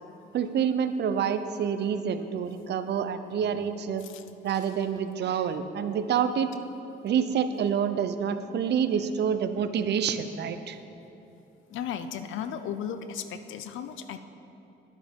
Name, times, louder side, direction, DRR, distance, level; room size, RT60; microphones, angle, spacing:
voice 1, 0.3-4.0 4.4-6.5 7.0-10.8, right 7 dB, 60° right, 10 dB, 0.6 m, -27 dB
sound 1, 4.4-5.0 5.4-5.5, right 1 dB, 20° right, 2.2 m, -57 dB
voice 2, 11.7-14.2, left 8 dB, 80° left, 10 dB, 0.6 m, -35 dB
11.0 x 8.9 x 3.6 m, 2.9 s
cardioid pair, 90°, 20 cm